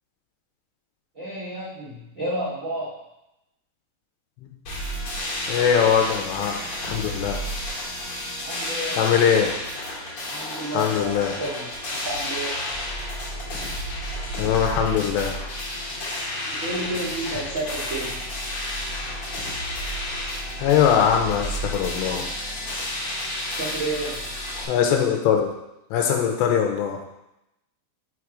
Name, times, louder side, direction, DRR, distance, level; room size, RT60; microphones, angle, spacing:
voice 1, 1.1-3.0 8.4-9.1 10.3-12.7 16.0-18.2 23.6-24.2, right 1 dB, 85° right, -9 dB, 0.7 m, -31 dB
sound 1, 4.6-24.6, left 1 dB, 45° left, 1.9 m, -31 dB
voice 2, 5.5-7.4 9.0-9.5 10.7-11.4 14.4-15.3 20.6-22.3 24.7-25.5 25.9-27.0, left 8 dB, 80° left, 3 dB, 2.8 m, -21 dB
5.9 x 4.8 x 4.9 m, 0.89 s
omnidirectional pair, 5.1 m